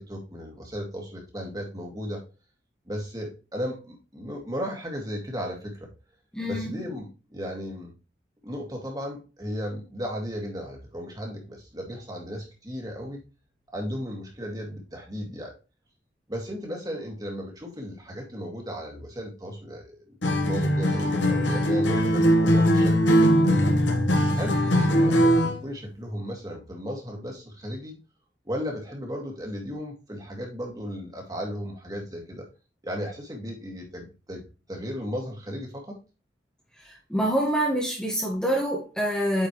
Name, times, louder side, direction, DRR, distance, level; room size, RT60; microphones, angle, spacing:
voice 1, 0.0-2.2 2.9-5.9 6.4-7.9 8.4-13.2 13.7-15.5 16.3-23.7 24.3-27.9 28.4-32.5 32.8-34.4 34.7-36.0, equal, 20° right, 2.3 m, -35 dB
voice 2, 6.3-6.8 37.1-39.5, equal, 5° left, 1.6 m, -26 dB
Acoustic guitar, 20.2-25.6, equal, 85° left, 1.5 m, -21 dB
9.4 x 5.1 x 3.2 m
head